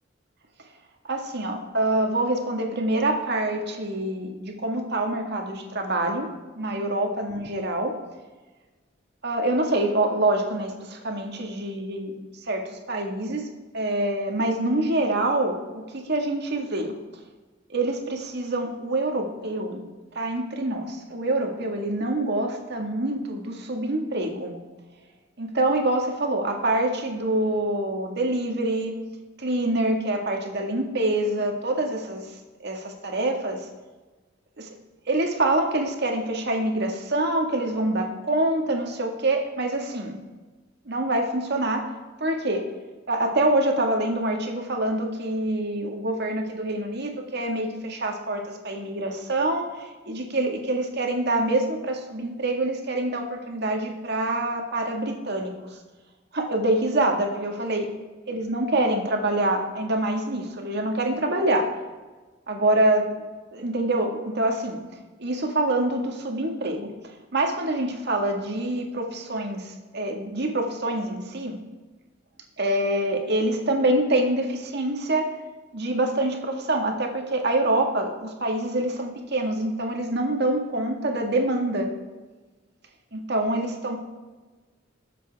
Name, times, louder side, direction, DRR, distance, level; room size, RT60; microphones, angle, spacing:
voice 1, 1.0-6.3 6.5-8.0 9.2-12.2 12.5-13.5 13.7-16.9 17.7-19.8 20.2-24.5 25.4-28.9 29.4-32.3 32.6-33.6 34.6-34.7 35.1-40.2 40.9-41.9 42.2-42.6 43.1-55.8 56.3-57.9 58.3-61.7 62.5-63.1 63.5-64.8 65.2-66.9 67.3-71.6 72.6-75.3 75.7-81.9 83.1-84.0, right 1 dB, 60° right, 2 dB, 1.8 m, -26 dB
20.5 x 7.4 x 3.5 m, 1.3 s
head